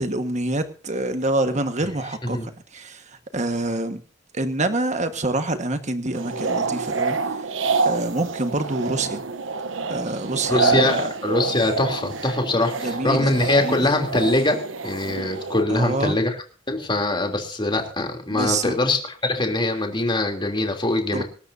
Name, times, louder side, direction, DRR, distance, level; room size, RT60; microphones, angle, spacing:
voice 1, 0.0-4.0 4.3-7.5 7.8-9.2 9.9-11.1 12.8-13.3 13.6-13.9 15.7-16.2 18.3-18.8 21.1-21.2, right 2 dB, 40° right, 8 dB, 1.5 m, -26 dB
sound 1, 6.1-15.6, right 4 dB, 85° right, 1.0 m, -27 dB
voice 2, 10.5-16.4 16.7-21.2, left 2 dB, 25° left, 3 dB, 3.2 m, -23 dB
25.5 x 13.0 x 2.8 m, 0.38 s
head